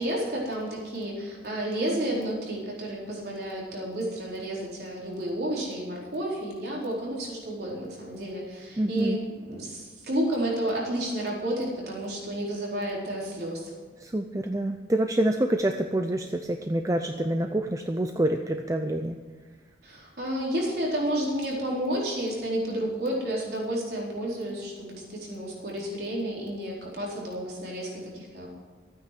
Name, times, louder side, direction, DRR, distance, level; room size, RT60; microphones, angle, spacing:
voice 1, 0.0-9.2 9.5-13.7 19.8-28.5, right 1 dB, 65° right, -3 dB, 4.3 m, -31 dB
voice 2, 8.8-9.2 14.0-19.2, right 1 dB, 20° right, 6 dB, 0.5 m, -27 dB
14.0 x 9.2 x 7.7 m, 1.4 s
head